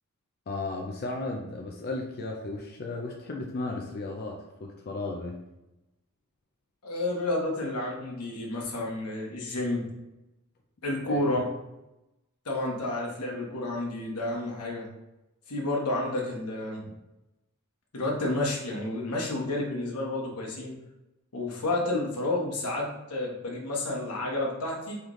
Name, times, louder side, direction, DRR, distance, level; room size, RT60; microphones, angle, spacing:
voice 1, 0.5-5.5 11.1-11.5, left 2 dB, 45° left, 0 dB, 0.5 m, -35 dB
voice 2, 6.8-9.9 10.8-11.4 12.4-14.8 15.5-16.8 17.9-20.7 21.3-25.0, left 2 dB, 85° left, -2 dB, 1.1 m, -30 dB
3.8 x 3.3 x 3.1 m, 0.94 s
head